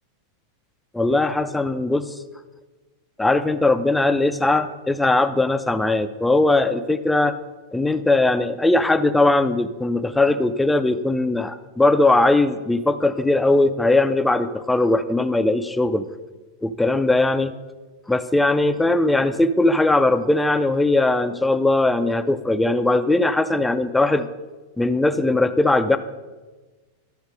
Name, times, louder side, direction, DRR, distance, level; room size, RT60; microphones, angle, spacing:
voice 1, 0.9-2.2 3.2-7.4 7.7-16.1 16.6-17.5 18.1-24.3 24.8-26.0, left 2 dB, 5° left, 10 dB, 0.5 m, -19 dB
13.0 x 4.3 x 5.3 m, 1.3 s
figure-of-eight pair, 90°, 0 cm